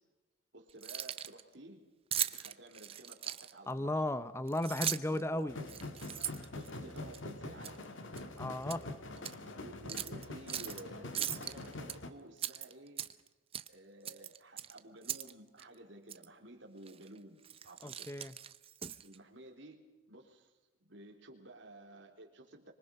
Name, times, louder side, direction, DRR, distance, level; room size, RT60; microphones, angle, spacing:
voice 1, 0.5-1.9 2.3-4.1 5.1-5.7 6.5-7.8 9.4-13.0 13.7-18.1 19.0-20.5 20.8-22.7, right 1 dB, 65° right, 1 dB, 3.6 m, -53 dB
Keys jangling, 0.7-1.4 2.1-3.7 4.5-5.2 5.6-7.2 7.6-7.8 8.2-8.8 9.2-9.3 9.9-10.8 11.1-12.0 12.4-13.3 13.5-13.7 14.0-15.3 15.6-15.7 16.1-16.3 16.9-17.1 17.4-19.2, right 10 dB, 30° right, 0.7 m, -39 dB
voice 2, 3.7-5.6 8.4-8.8 17.8-18.3, left 1 dB, 15° left, 14 dB, 0.7 m, -35 dB
batucada far away distance barcelona, 5.5-12.1, left 2 dB, 75° left, 1.9 m, -45 dB
25.5 x 23.5 x 5.4 m, 1.1 s
head